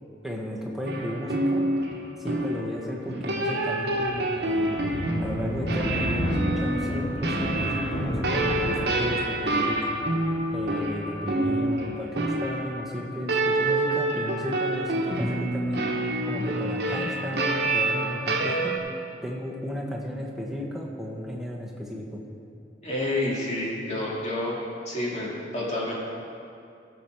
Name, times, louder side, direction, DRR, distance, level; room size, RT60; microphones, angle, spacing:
voice 1, 0.2-1.6 2.2-4.7 5.2-9.9 10.5-15.8 16.3-18.7 19.2-22.2, equal, ahead, -3 dB, 1.2 m, -34 dB
sound 1, 0.9-18.8, right 2 dB, 60° right, 1.0 m, -27 dB
Thunder, 3.4-12.5, equal, 80° left, 2.9 m, -33 dB
voice 2, 22.8-24.6 24.9-25.9, left 1 dB, 40° left, -5 dB, 2.2 m, -29 dB
14.5 x 6.9 x 4.5 m, 2.5 s
head